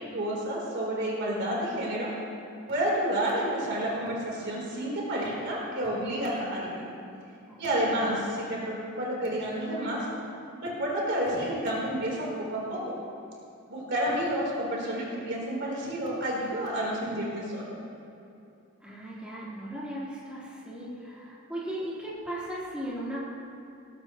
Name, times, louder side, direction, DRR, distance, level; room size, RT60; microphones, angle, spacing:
voice 1, 0.0-2.1 2.7-6.7 7.6-10.0 10.6-12.9 13.7-17.7, right 1 dB, 55° right, -4 dB, 3.7 m, -30 dB
voice 2, 7.5-8.0 18.8-23.3, right 1 dB, 5° right, -9 dB, 3.8 m, -37 dB
19.5 x 17.0 x 3.0 m, 2.7 s
head